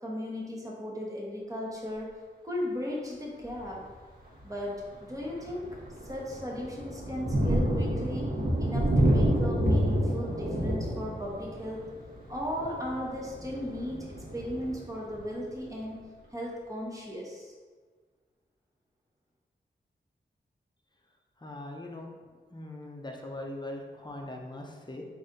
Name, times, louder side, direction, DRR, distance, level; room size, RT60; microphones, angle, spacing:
voice 1, 0.0-2.1 2.4-3.8 4.4-5.7 6.0-8.3 8.6-11.8 12.3-16.0 16.3-17.5, equal, 15° right, -3 dB, 1.1 m, -36 dB
Thunder, 3.4-3.8 4.3-4.5 4.9-15.5, equal, 50° right, 1.2 m, -29 dB
voice 2, 21.4-22.1 22.5-25.0, left 1 dB, 20° left, 1 dB, 0.7 m, -40 dB
4.0 x 2.7 x 3.8 m, 1.5 s
cardioid pair, 45°, 19 cm